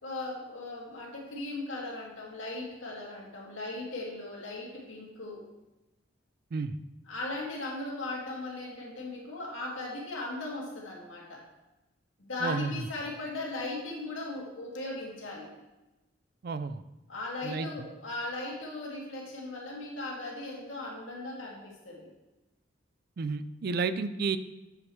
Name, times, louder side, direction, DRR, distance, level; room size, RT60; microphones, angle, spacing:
voice 1, 0.0-5.4 7.1-11.4 12.2-15.5 17.1-22.1, left 2 dB, 90° left, -3 dB, 2.3 m, -38 dB
voice 2, 12.4-12.8 16.4-16.8 17.4-17.7 23.2-24.4, right 4 dB, 55° right, 13 dB, 0.4 m, -31 dB
8.4 x 8.3 x 3.2 m, 1.0 s
head